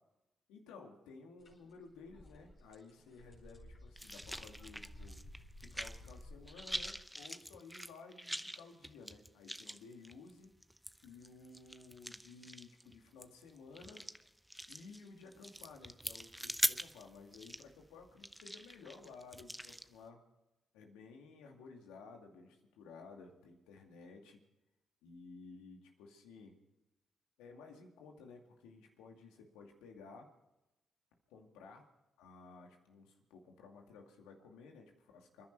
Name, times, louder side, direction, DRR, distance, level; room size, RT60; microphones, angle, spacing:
voice 1, 0.5-5.2 5.6-10.5 11.0-14.0 14.7-20.2 20.7-24.4 25.0-26.6 27.4-30.3 31.3-31.8 32.2-35.5, left 4 dB, 90° left, 2 dB, 2.3 m, -55 dB
sound 1, 1.4-1.5 1.9-6.9, left 1 dB, 50° left, 4.8 m, -54 dB
sound 2, 4.0-6.2 6.5-19.9, equal, 5° right, 0.8 m, -43 dB
28.5 x 10.5 x 4.6 m, 0.96 s
supercardioid pair, 50°, 0 cm